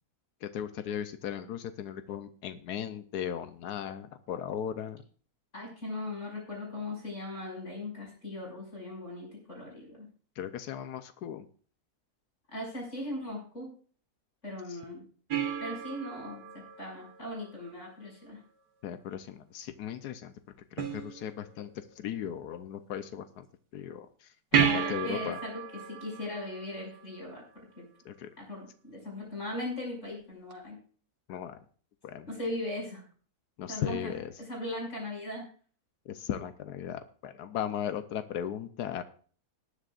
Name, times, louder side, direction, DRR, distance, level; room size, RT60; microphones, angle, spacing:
voice 1, 0.4-5.0 10.4-11.4 14.7-14.8 18.8-20.3 20.7-23.5 23.7-25.4 28.0-28.3 31.3-31.6 32.0-32.3 33.6-34.3 36.1-39.0, left 9 dB, 90° left, 10 dB, 1.3 m, -37 dB
voice 2, 5.5-10.1 12.5-13.7 14.4-15.0 15.6-18.4 24.5-25.6 25.9-27.4 27.8-27.9 28.4-30.8 32.3-33.0 33.7-35.4, left 1 dB, 50° left, -1 dB, 6.3 m, -38 dB
sound 1, 15.3-17.9 20.8-21.7 24.5-27.5 30.5-30.6, right 8 dB, 90° right, 1.8 m, -33 dB
19.5 x 9.8 x 2.5 m, 0.43 s
omnidirectional pair, 1.6 m